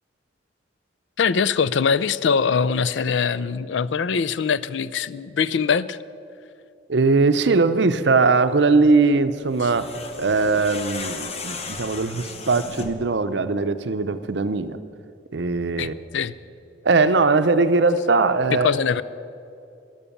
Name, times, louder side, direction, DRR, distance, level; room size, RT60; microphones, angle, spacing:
voice 1, 1.2-6.0 15.8-16.3 18.6-19.0, left 6 dB, 75° left, 17 dB, 0.4 m, -22 dB
voice 2, 6.9-9.9 10.2-14.8 15.3-16.0 16.8-18.7, right 3 dB, 65° right, 11 dB, 0.6 m, -20 dB
sound 1, 9.5-13.1, left 4 dB, 35° left, 0.9 m, -35 dB
12.5 x 11.5 x 7.1 m, 2.6 s
head